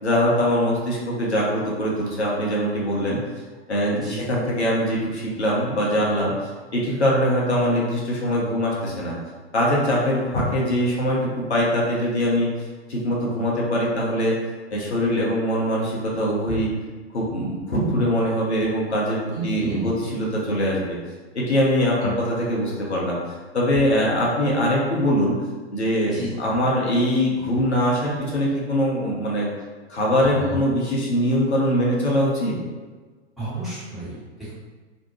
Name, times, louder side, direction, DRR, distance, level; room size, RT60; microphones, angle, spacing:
voice 1, 0.0-3.2 3.7-9.2 9.5-12.5 12.9-14.4 14.7-16.7 17.1-21.0 21.3-23.2 23.5-25.3 25.7-29.5 29.9-32.6, equal, 85° left, -4 dB, 0.8 m, -22 dB
voice 2, 3.9-4.2 19.3-19.9 21.9-22.1 26.0-26.6 30.2-30.6 33.4-34.5, right 1 dB, ahead, -12 dB, 1.1 m, -32 dB
2.5 x 2.1 x 2.9 m, 1.4 s
figure-of-eight pair, 100°, 33 cm